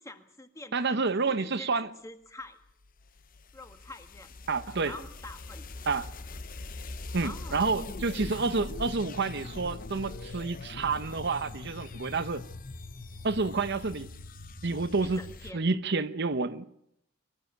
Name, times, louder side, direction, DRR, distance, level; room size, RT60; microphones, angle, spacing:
voice 1, 0.0-2.6 3.5-4.3 4.8-5.7 7.2-7.7 15.0-15.6, left 2 dB, 15° left, 1.8 m, -46 dB
voice 2, 0.7-1.9 4.5-4.9 5.9-6.1 7.1-12.5 13.2-14.1 14.6-15.2 15.5-16.7, right 4 dB, 55° right, 0.9 m, -29 dB
sound 1, 2.7-15.5, left 2 dB, 45° left, 0.9 m, -42 dB
24.0 x 15.0 x 9.2 m
head